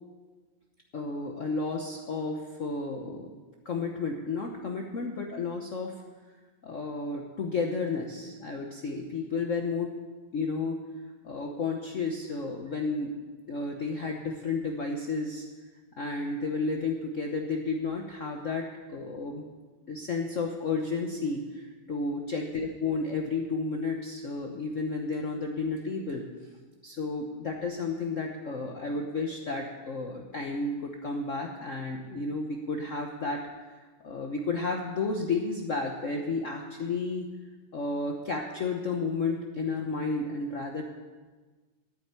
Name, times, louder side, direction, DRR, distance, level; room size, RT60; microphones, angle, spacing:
voice 1, 0.9-3.3 3.6-5.9 6.6-9.9 10.3-10.8 11.2-13.2 13.5-15.5 16.0-19.5 19.9-26.3 26.8-33.4 33.7-37.3 37.7-40.8, left 3 dB, 50° left, 2 dB, 1.1 m, -32 dB
11.5 x 9.0 x 8.9 m, 1.4 s
omnidirectional pair, 2.1 m